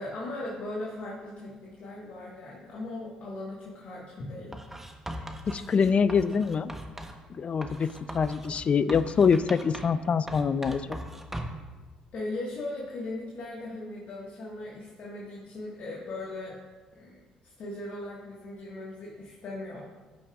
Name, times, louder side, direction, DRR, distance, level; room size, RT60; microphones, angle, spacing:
voice 1, 0.0-4.6 7.7-7.9 12.1-16.6 16.9-19.8, left 2 dB, 60° left, -4 dB, 1.4 m, -38 dB
Writing, 4.5-7.2 7.6-10.0 10.3-11.7, right 1 dB, 10° right, 1.0 m, -40 dB
voice 2, 5.5-6.7 7.3-11.0, left 6 dB, 40° left, 15 dB, 0.4 m, -25 dB
13.5 x 5.8 x 2.3 m, 1.3 s
hypercardioid pair, 55°, 3 cm